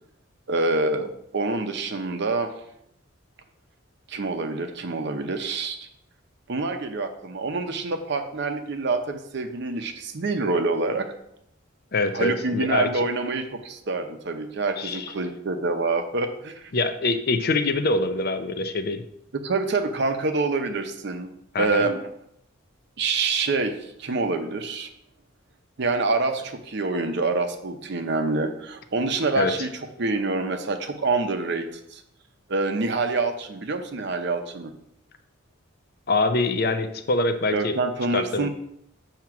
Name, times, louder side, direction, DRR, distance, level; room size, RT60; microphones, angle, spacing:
voice 1, 0.5-2.5 4.1-5.8 6.5-11.1 12.1-16.7 19.3-21.3 21.6-22.1 23.0-24.9 25.8-29.7 30.0-32.0 32.5-34.7 37.5-38.5, right 3 dB, 55° right, 7 dB, 0.6 m, -26 dB
voice 2, 11.9-13.1 14.8-15.1 16.7-19.0 21.5-21.9 29.4-29.5 36.1-37.8 38.1-38.5, left 2 dB, 50° left, 8 dB, 0.5 m, -24 dB
7.3 x 2.9 x 5.8 m, 0.76 s
head